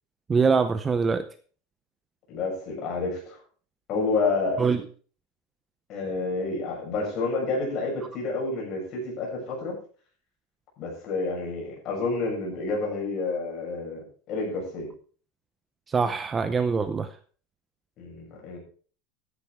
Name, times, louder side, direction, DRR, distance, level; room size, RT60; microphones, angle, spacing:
voice 1, 0.3-1.3 4.6-4.9 15.9-17.1, right 5 dB, 15° right, 11 dB, 0.6 m, -23 dB
voice 2, 2.3-3.4 3.9-4.6 5.9-9.7 10.8-14.9 18.0-18.6, left 3 dB, 35° left, -1 dB, 7.2 m, -29 dB
13.5 x 11.0 x 3.6 m, 0.42 s
supercardioid pair, 165°, 0 cm